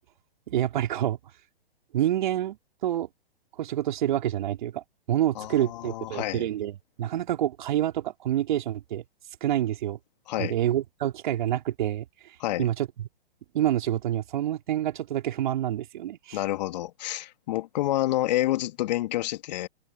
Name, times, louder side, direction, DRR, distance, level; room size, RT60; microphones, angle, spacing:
voice 1, 0.5-1.2 1.9-2.6 2.8-3.1 3.6-9.0 9.4-10.0 10.4-12.1 12.6-12.9 13.5-16.4, right 12 dB, 50° right, 3.8 m, -27 dB
voice 2, 5.3-6.5 10.3-10.5 12.4-12.7 16.3-19.7, left 15 dB, 45° left, 2.9 m, -28 dB
open air
hypercardioid pair, 130°, 30 cm